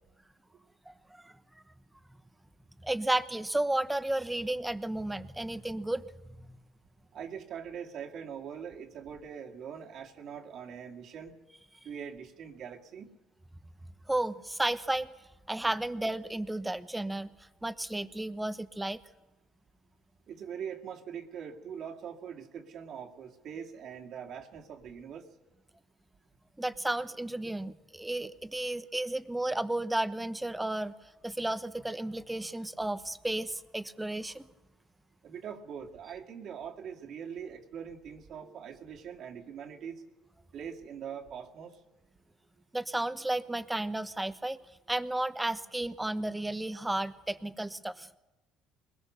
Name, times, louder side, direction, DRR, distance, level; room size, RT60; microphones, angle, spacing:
voice 1, 0.9-1.3 2.8-6.6 14.1-15.1 15.5-17.3 17.6-19.0 26.6-30.9 31.2-34.5 42.7-44.6 44.9-48.1, right 1 dB, 10° right, 13 dB, 1.0 m, -33 dB
voice 2, 7.1-11.3 11.8-13.1 20.3-25.3 35.2-40.0 40.5-41.8, right 7 dB, 60° right, 1 dB, 2.4 m, -42 dB
21.5 x 20.5 x 6.7 m, 1.1 s
supercardioid pair, 90°, 0 cm